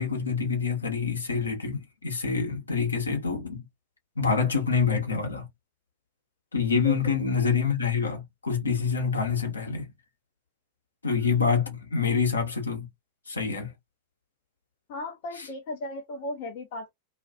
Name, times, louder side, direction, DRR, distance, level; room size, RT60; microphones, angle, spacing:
voice 1, 0.0-3.7 4.2-5.5 6.5-9.9 11.0-12.9 13.3-13.7, left 5 dB, 75° left, 0.9 m, -26 dB
voice 2, 14.9-16.9, left 1 dB, 50° left, 0.6 m, -36 dB
2.4 x 2.3 x 2.3 m
figure-of-eight pair, 90°, 0 cm